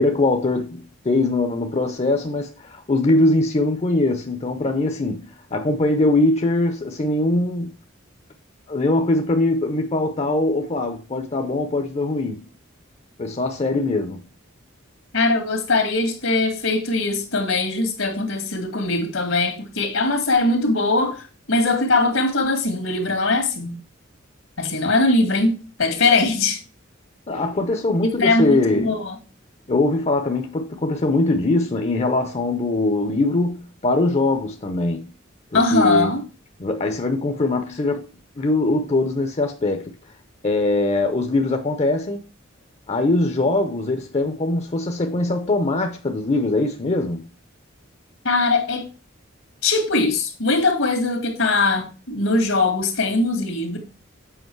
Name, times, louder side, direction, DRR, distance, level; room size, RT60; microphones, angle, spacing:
voice 1, 0.0-7.7 8.7-12.4 13.2-14.2 27.3-28.9 29.7-35.1 35.5-36.1 36.6-38.1 38.4-39.9 40.4-42.3 42.9-47.2, left 2 dB, 35° left, 0.7 m, -22 dB
voice 2, 15.1-23.8 24.6-26.6 28.0-29.2 35.5-36.2 48.2-48.9 49.6-53.8, left 3 dB, 80° left, 2.1 m, -21 dB
7.9 x 5.2 x 4.6 m
head